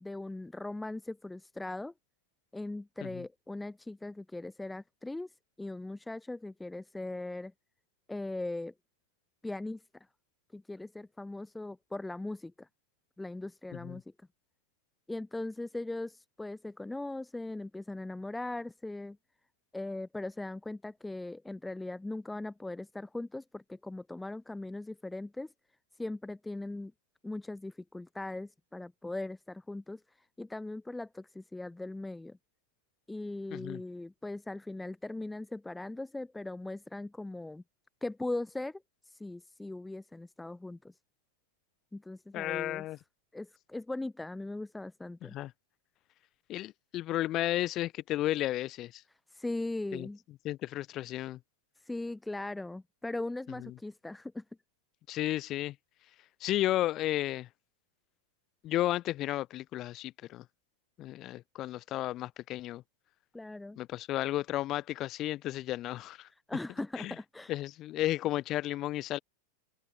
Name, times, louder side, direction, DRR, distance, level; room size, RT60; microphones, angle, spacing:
voice 1, 0.0-1.9 2.5-5.3 5.6-7.5 8.1-8.7 9.4-9.8 10.5-12.7 13.2-14.0 15.1-19.2 19.7-25.5 26.0-26.9 27.2-30.0 30.4-32.4 33.1-37.6 38.0-40.9 41.9-42.8 43.3-45.3 49.3-50.2 51.8-54.4 63.3-63.8 66.5-67.5, left 2 dB, 5° left, 0.4 m, -39 dB
voice 2, 33.5-33.8 42.3-43.0 45.2-45.5 46.5-49.0 49.9-50.1 50.4-51.4 53.6-53.8 55.1-55.8 56.4-57.5 58.6-60.5 61.0-62.8 63.8-66.3 67.0-67.1 67.5-69.2, left 15 dB, 35° left, 1.1 m, -33 dB
figure-of-eight pair, 90°, 0 cm